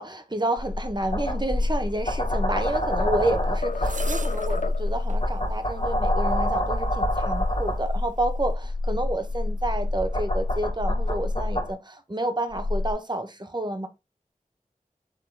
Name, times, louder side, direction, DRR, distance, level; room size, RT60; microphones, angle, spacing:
voice 1, 0.0-13.9, right 1 dB, 30° right, 1.2 m, -29 dB
sound 1, 0.6-11.7 12.5-12.9, left 1 dB, 40° left, 2.1 m, -26 dB
sound 2, 1.9-3.3 3.6-5.0, left 4 dB, 60° left, 0.8 m, -35 dB
sound 3, 3.3-3.4 3.8-4.6 5.1-5.2 6.3-6.4, right 4 dB, 60° right, 0.6 m, -38 dB
6.6 x 4.1 x 3.9 m
wide cardioid pair, 50°, 15 cm